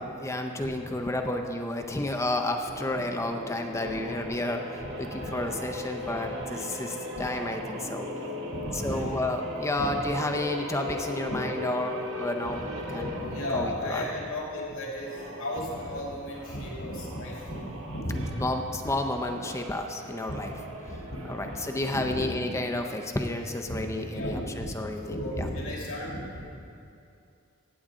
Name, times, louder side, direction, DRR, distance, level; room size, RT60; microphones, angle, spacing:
voice 1, 0.0-4.6 5.0-8.1 8.8-12.6 12.9-13.1 13.5-14.1 18.4-20.5 21.3-25.0 25.4-25.5, left 1 dB, 15° left, 4 dB, 0.6 m, -31 dB
sound 1, 2.6-14.3 14.9-22.1, left 1 dB, 60° right, 1.8 m, -39 dB
voice 2, 4.8-5.4 7.1-7.3 8.5-9.1 9.8-10.0 11.3-11.4 12.4-18.5 18.8-18.9 20.3-21.6 21.9-22.6 23.7-23.8 24.1-26.5, equal, 80° left, -4 dB, 2.7 m, -35 dB
16.0 x 8.8 x 3.7 m, 2.6 s
head